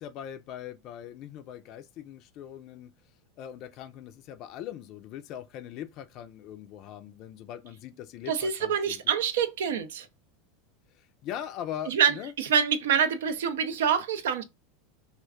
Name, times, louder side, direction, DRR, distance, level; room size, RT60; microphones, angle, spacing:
voice 1, 0.0-2.9 3.4-9.0 10.9-12.3, left 10 dB, 50° left, 0.4 m, -41 dB
voice 2, 8.3-10.1 11.9-14.4, right 7 dB, 70° right, 0.4 m, -26 dB
2.4 x 2.2 x 3.5 m
hypercardioid pair, 85°, 0 cm